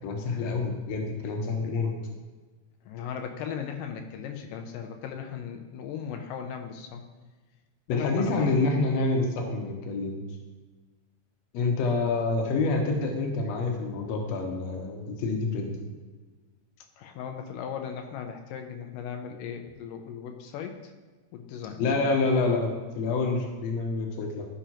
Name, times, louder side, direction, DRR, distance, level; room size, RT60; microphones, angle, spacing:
voice 1, 0.0-1.9 7.9-10.2 11.5-15.9 21.8-24.5, left 3 dB, 65° left, 2 dB, 2.0 m, -27 dB
voice 2, 2.9-7.0 7.9-8.5 11.6-11.7 17.0-20.8 21.3-21.8 22.1-22.6, left 7 dB, 85° left, 4 dB, 2.4 m, -37 dB
14.0 x 5.0 x 2.9 m, 1.3 s
omnidirectional pair, 3.8 m